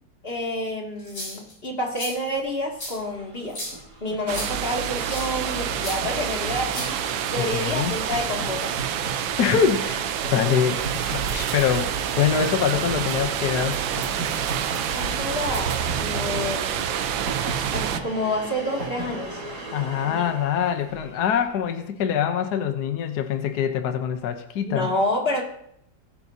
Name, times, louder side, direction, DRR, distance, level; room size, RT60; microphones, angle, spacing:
voice 1, 0.2-3.6 4.0-7.0 7.3-8.8 14.9-16.7 17.7-19.4 20.0-20.2 24.7-25.4, left 1 dB, 30° left, -1 dB, 2.6 m, -28 dB
sound 1, 1.0-1.5 1.9-2.1 2.8-2.9 3.5-3.7 4.3-4.5 5.1-5.3 5.8-6.0 6.7-7.3, left 1 dB, 85° left, 7.2 m, -34 dB
Train, 2.7-2.8 3.0-21.4, right 3 dB, 60° right, 3.4 m, -36 dB
sound 2, 4.3-18.0, right 9 dB, 85° right, 1.5 m, -28 dB
voice 2, 7.4-7.9 9.4-10.0 10.3-13.8 19.7-24.9, left 8 dB, 65° left, 7 dB, 1.4 m, -24 dB
21.0 x 10.5 x 2.8 m, 0.72 s
omnidirectional pair, 2.0 m